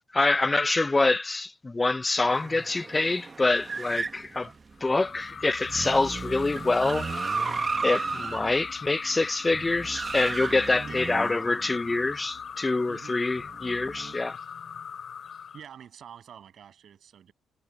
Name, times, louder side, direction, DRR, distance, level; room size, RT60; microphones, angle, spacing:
voice 1, 0.1-4.5 4.8-7.3 7.8-14.4, left 3 dB, 20° left, 0.3 m, -26 dB
sound 1, 2.3-12.2 13.3-14.1, right 4 dB, 35° right, 1.3 m, -35 dB
sound 2, 4.8-15.6, left 7 dB, 55° left, 3.0 m, -41 dB
voice 2, 12.9-13.2 15.5-17.3, right 8 dB, 60° right, 7.1 m, -47 dB
cardioid pair, 90°, 0 cm